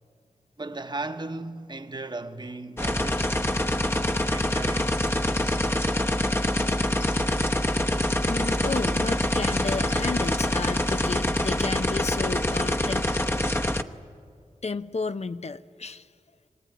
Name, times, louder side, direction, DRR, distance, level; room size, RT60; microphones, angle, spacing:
voice 1, 0.6-3.4 4.3-5.1, right 2 dB, 35° right, 1.2 m, -36 dB
sound 1, 2.8-13.8, left 1 dB, 20° left, 1.0 m, -25 dB
voice 2, 8.2-13.1 14.6-16.1, left 4 dB, 55° left, 0.7 m, -32 dB
23.5 x 18.0 x 9.5 m
wide cardioid pair, 55°, 13 cm